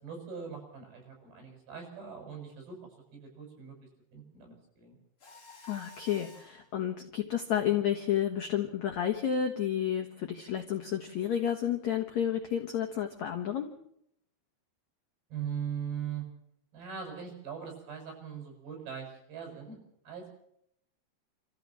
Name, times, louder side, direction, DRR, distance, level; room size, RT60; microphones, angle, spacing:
voice 1, 0.0-2.8 3.1-5.0 15.3-16.3 16.7-19.8 20.1-20.3, right 7 dB, 60° right, 2 dB, 8.8 m, -41 dB
Mechanisms, 5.2-6.7, left 2 dB, 30° left, 5.1 m, -51 dB
voice 2, 5.7-13.7, left 9 dB, 75° left, 2 dB, 1.6 m, -31 dB
27.5 x 14.5 x 7.5 m, 0.73 s
omnidirectional pair, 5.4 m